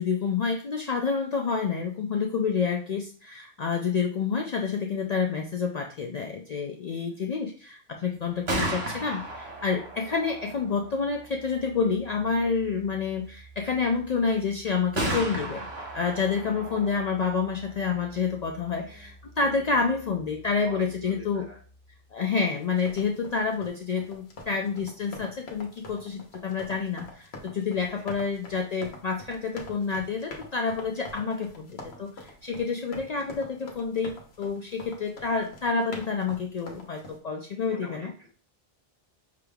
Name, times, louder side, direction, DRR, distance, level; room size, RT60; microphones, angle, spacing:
voice 1, 0.0-15.7 15.9-21.5 22.1-38.1, left 5 dB, 55° left, 2 dB, 0.5 m, -28 dB
voice 2, 7.0-7.4 16.4-16.6 18.8-19.1 20.5-21.6 22.8-22.9 27.9-28.2 37.6-38.3, right 1 dB, 40° right, -3 dB, 1.6 m, -47 dB
Gunshot gunfire, 8.2-22.0, right 1 dB, 85° right, 1.3 m, -38 dB
sound 1, 22.6-37.2, left 2 dB, 85° left, 1.1 m, -45 dB
5.8 x 3.4 x 2.3 m, 0.41 s
omnidirectional pair, 1.0 m